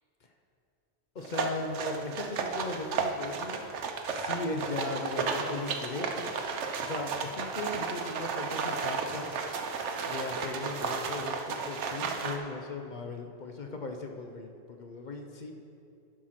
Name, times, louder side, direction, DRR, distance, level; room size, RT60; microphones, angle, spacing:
voice 1, 1.1-3.6 4.1-6.3 6.8-9.3 9.6-9.7 10.0-15.5, left 2 dB, 50° left, 4 dB, 0.7 m, -38 dB
sound 1, 1.2-12.4, right 5 dB, 80° right, 1.0 m, -33 dB
11.5 x 4.8 x 5.8 m, 2.6 s
omnidirectional pair, 1.2 m